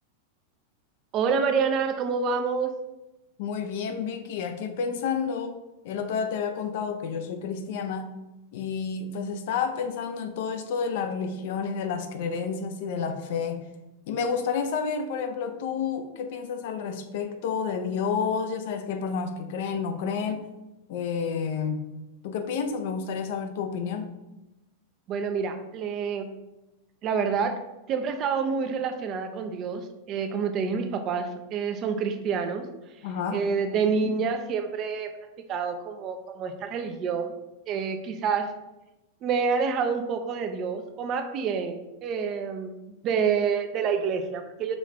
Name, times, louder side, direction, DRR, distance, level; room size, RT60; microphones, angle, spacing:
voice 1, 1.1-2.7 25.1-26.3 27.0-27.6 27.9-32.7 33.3-35.1 35.5-37.3 37.7-38.5 39.2-42.7 43.0-44.8, right 5 dB, 40° right, 7 dB, 0.5 m, -27 dB
voice 2, 3.4-5.6 5.8-8.1 8.5-13.7 14.1-20.4 20.9-21.8 22.2-24.1 33.0-33.4, left 6 dB, 60° left, 8 dB, 0.5 m, -30 dB
5.0 x 2.4 x 3.1 m, 0.99 s
hypercardioid pair, 100°, 0 cm